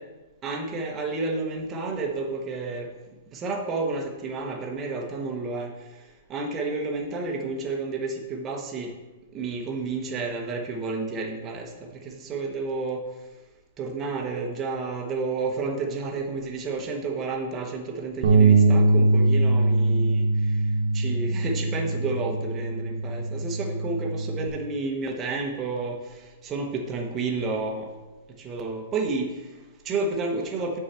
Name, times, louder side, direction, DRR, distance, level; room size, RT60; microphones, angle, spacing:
voice 1, 0.4-2.9 3.3-8.9 9.3-13.3 13.8-27.9 28.3-30.8, right 3 dB, 15° right, 2 dB, 1.0 m, -31 dB
Bass guitar, 18.2-24.5, right 2 dB, 55° right, 1.1 m, -22 dB
7.1 x 4.6 x 6.8 m, 1.2 s
hypercardioid pair, 170°, 0 cm